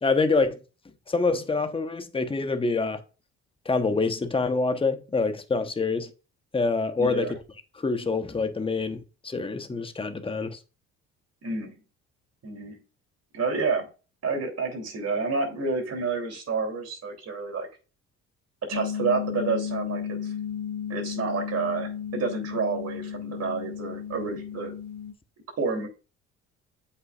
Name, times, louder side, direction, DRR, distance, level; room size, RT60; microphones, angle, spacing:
voice 1, 0.0-0.6 1.1-3.0 3.6-6.1 6.5-7.3 7.7-10.6, left 3 dB, 15° left, 1.0 m, -26 dB
voice 2, 7.0-7.3 11.4-11.8 12.4-12.8 13.3-13.9 14.2-17.7 18.7-20.3 20.9-24.7 25.6-25.9, right 4 dB, 45° right, 3.3 m, -29 dB
sound 1, 18.7-25.1, left 8 dB, 80° left, 1.9 m, -34 dB
7.8 x 5.7 x 2.5 m
hypercardioid pair, 65°, 34 cm